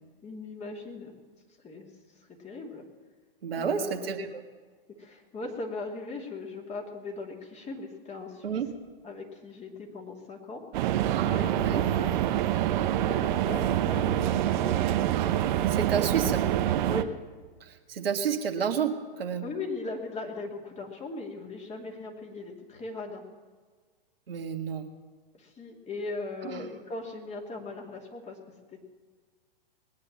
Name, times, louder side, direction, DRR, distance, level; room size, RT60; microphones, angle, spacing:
voice 1, 0.2-1.2 1.6-2.8 3.6-4.1 5.0-8.6 9.0-12.3 13.0-14.9 16.9-17.2 19.4-23.2 25.3-28.4 28.7-28.8, left 3 dB, 20° left, 1 dB, 2.8 m, -39 dB
voice 2, 3.4-4.4 8.4-8.7 11.6-11.8 15.7-16.4 17.6-19.4 24.3-24.9 26.4-26.7, right 7 dB, 75° right, 4 dB, 1.7 m, -30 dB
sound 1, 10.7-17.0, right 12 dB, 55° right, 1.0 m, -26 dB
20.0 x 9.6 x 7.4 m, 1.5 s
hypercardioid pair, 110°, 29 cm